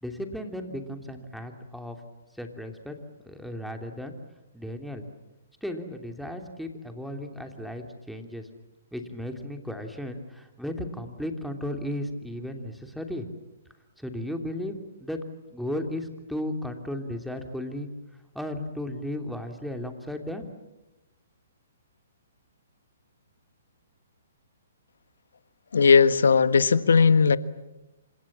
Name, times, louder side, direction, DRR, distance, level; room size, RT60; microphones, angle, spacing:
voice 1, 0.0-2.0 2.4-2.9 3.2-4.1 4.5-5.0 5.6-8.5 8.9-13.3 14.0-14.7 15.0-15.2 15.5-17.9 18.3-20.5, left 1 dB, ahead, 4 dB, 2.9 m, -35 dB
voice 2, 25.7-27.4, left 5 dB, 80° left, 13 dB, 1.4 m, -18 dB
28.5 x 26.5 x 7.4 m, 1.0 s
hypercardioid pair, 140°, 0 cm